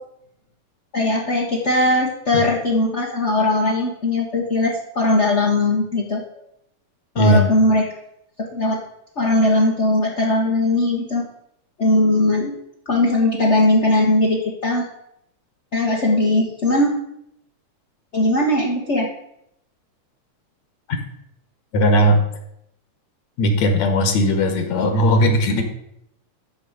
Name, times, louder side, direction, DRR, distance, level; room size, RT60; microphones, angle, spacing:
voice 1, 0.9-6.3 7.1-7.9 8.4-8.8 9.2-11.3 11.8-12.6 12.9-14.9 15.7-17.0 18.1-19.1, left 2 dB, 40° left, -2 dB, 0.9 m, -19 dB
voice 2, 7.2-7.5 20.9-21.0 21.7-22.2 23.4-25.6, equal, 65° left, 6 dB, 2.7 m, -17 dB
13.0 x 4.6 x 8.0 m, 0.78 s
omnidirectional pair, 3.4 m